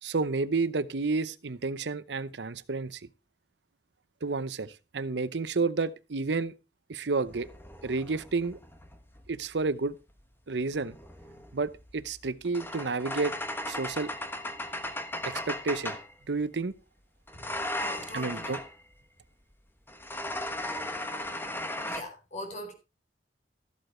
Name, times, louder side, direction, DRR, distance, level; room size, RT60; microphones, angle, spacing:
voice 1, 0.0-3.0 4.2-6.5 6.9-7.5 7.8-8.6 9.3-10.0 10.5-11.0 11.5-13.3 13.7-14.1 15.2-16.0 16.3-16.7 18.1-18.6, right 3 dB, 80° right, 0.8 m, -30 dB
sound 1, 7.2-9.4 10.6-16.1 17.3-18.8 19.9-22.0, left 1 dB, 15° left, 1.2 m, -37 dB
voice 2, 17.8-18.5 21.9-22.7, equal, 45° left, 4.1 m, -41 dB
14.0 x 8.0 x 4.4 m
head